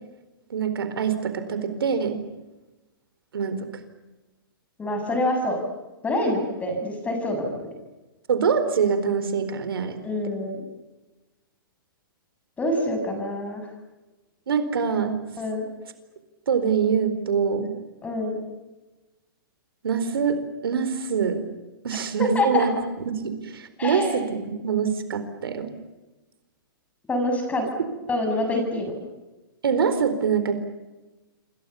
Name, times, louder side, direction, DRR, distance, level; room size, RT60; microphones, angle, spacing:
voice 1, 0.5-2.2 3.3-3.7 8.3-10.0 14.5-15.1 16.5-17.7 19.8-21.4 21.8-22.7 23.1-25.7 29.6-30.5, right 6 dB, 80° right, 10 dB, 4.4 m, -24 dB
voice 2, 4.8-5.6 6.0-7.7 10.0-10.7 12.6-13.6 15.4-15.7 18.0-18.4 22.2-22.7 23.8-24.2 27.1-27.7 28.1-28.9, left 1 dB, 10° left, 5 dB, 7.4 m, -26 dB
28.0 x 25.0 x 7.1 m, 1.1 s
hypercardioid pair, 145°, 12 cm